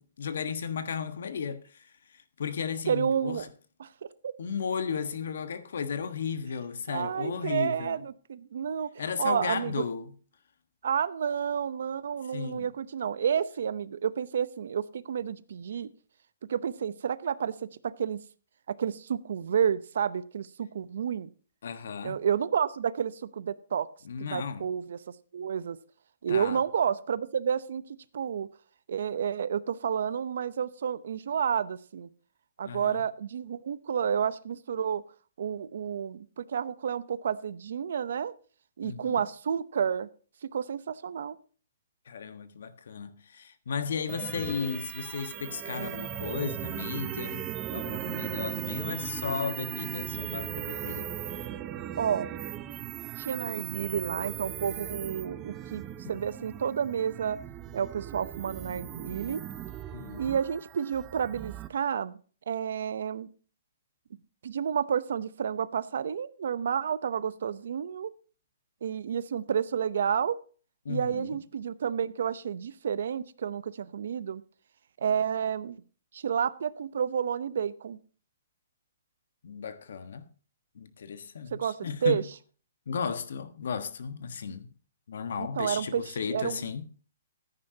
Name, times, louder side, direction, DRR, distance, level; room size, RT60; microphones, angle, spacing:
voice 1, 0.0-3.4 4.4-8.0 9.0-10.1 12.3-12.7 21.6-22.2 24.0-24.7 26.3-26.6 32.6-33.0 38.8-39.2 42.1-51.1 56.0-56.2 59.9-60.3 70.8-71.3 79.4-80.3 80.7-82.2 82.9-84.7 85.1-86.9, left 6 dB, 70° left, 1.4 m, -35 dB
voice 2, 2.9-3.5 3.8-3.9 4.2-4.3 6.9-9.8 10.8-15.9 16.5-17.5 17.8-18.2 18.7-21.3 22.0-23.9 24.2-25.0 25.3-25.8 26.2-27.8 28.1-28.5 28.9-32.1 32.6-35.0 35.4-38.3 38.8-40.1 40.5-41.4 52.0-52.3 53.2-57.4 57.7-59.4 60.2-62.2 62.5-63.3 64.4-68.1 68.8-70.4 70.9-74.4 75.0-75.8 76.1-78.0 81.5-82.2 85.4-86.7, right 8 dB, 65° right, 0.8 m, -30 dB
sound 1, 44.1-61.7, right 11 dB, 20° right, 0.6 m, -38 dB
15.0 x 9.7 x 2.8 m
hypercardioid pair, 160°, 0 cm